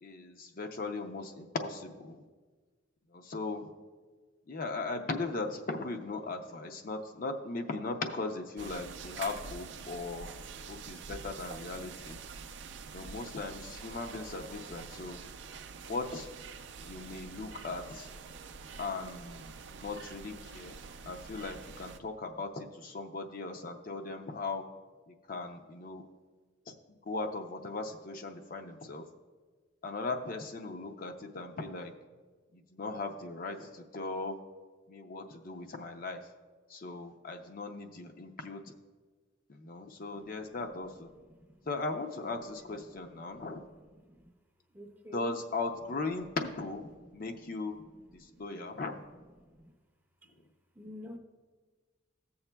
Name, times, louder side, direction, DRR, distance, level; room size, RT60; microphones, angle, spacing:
voice 1, 0.0-2.2 3.1-3.7 4.5-10.3 10.7-12.2 12.9-15.2 15.8-16.3 16.8-18.1 18.8-20.8 21.1-24.6 25.1-26.0 26.7-26.8 27.0-29.0 29.8-31.9 32.5-34.4 34.9-36.2 36.7-38.6 39.5-41.1 41.7-43.6 45.1-47.8 48.1-49.0, left 3 dB, 45° left, 4 dB, 0.5 m, -38 dB
sound 1, 8.6-22.0, right 5 dB, 60° right, 0.4 m, -46 dB
voice 2, 42.2-42.8 43.1-43.5 43.9-44.3 44.7-45.3 47.8-47.9 48.3-48.4 49.4-49.7 50.2-50.3 50.8-51.2, equal, 10° right, 3 dB, 0.5 m, -49 dB
14.5 x 7.0 x 2.2 m, 1.4 s
head